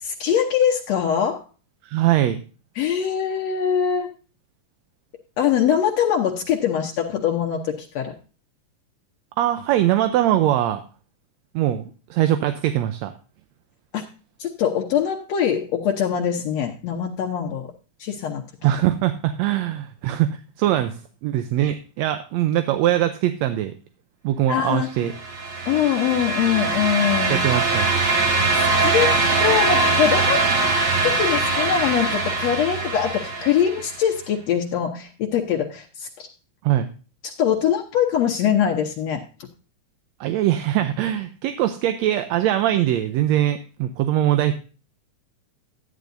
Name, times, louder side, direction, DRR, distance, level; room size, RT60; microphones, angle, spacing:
voice 1, 0.0-1.4 2.8-4.1 5.4-8.1 13.9-14.0 14.4-17.7 18.0-18.4 24.5-24.9 25.7-27.5 28.8-30.4 31.2-36.3 37.2-39.2, left 8 dB, 70° left, 2 dB, 2.0 m, -23 dB
voice 2, 1.8-2.4 9.4-10.8 11.5-13.1 18.6-23.7 24.2-25.1 27.3-28.0 36.6-36.9 40.2-44.5, right 12 dB, 75° right, 9 dB, 1.9 m, -22 dB
sound 1, 25.1-34.0, right 3 dB, 35° right, 1.6 m, -22 dB
12.5 x 10.5 x 2.6 m, 0.36 s
omnidirectional pair, 3.3 m